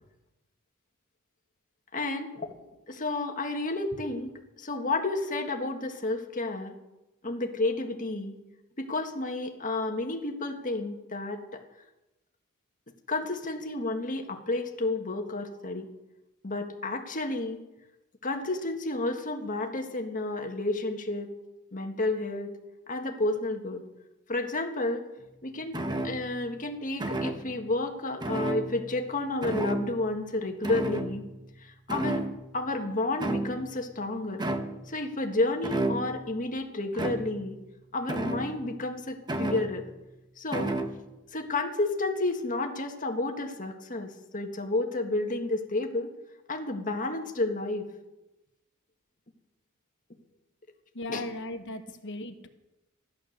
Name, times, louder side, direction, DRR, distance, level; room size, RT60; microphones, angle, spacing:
voice 1, 1.9-2.5 2.9-6.7 7.2-8.4 8.8-11.6 13.1-15.9 16.4-17.6 18.2-21.3 21.7-22.5 22.9-23.8 24.3-25.1 25.4-25.8 26.0-31.3 31.6-32.3 32.5-34.4 34.9-37.6 37.9-39.9 40.4-40.8 41.3-46.1 46.5-47.9 51.1-51.2, left 2 dB, 40° left, 3 dB, 1.7 m, -31 dB
sound 1, 25.7-26.4 27.0-27.6 28.2-29.1 29.4-30.1 30.6-31.6 31.9-32.7 33.2-33.8 34.4-34.9 35.6-36.3 36.9-37.5 38.1-38.8 39.3-40.0 40.5-41.0, right 1 dB, 20° right, 1.0 m, -32 dB
voice 2, 50.9-52.5, left 1 dB, 60° left, 6 dB, 1.1 m, -37 dB
14.5 x 11.5 x 6.6 m, 0.99 s
head